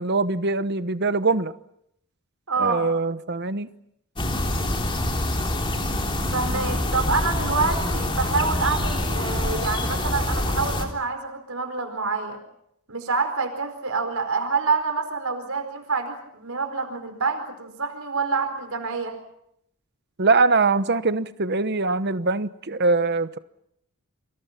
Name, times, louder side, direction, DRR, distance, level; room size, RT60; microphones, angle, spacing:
voice 1, 0.0-1.5 2.6-3.7 20.2-23.4, right 3 dB, 50° right, 1.0 m, -22 dB
voice 2, 2.5-2.8 6.3-12.4 12.9-19.2, right 4 dB, 75° right, 4.6 m, -27 dB
sound 1, 4.2-10.9, left 1 dB, 25° left, 3.4 m, -25 dB
30.0 x 25.5 x 6.0 m
head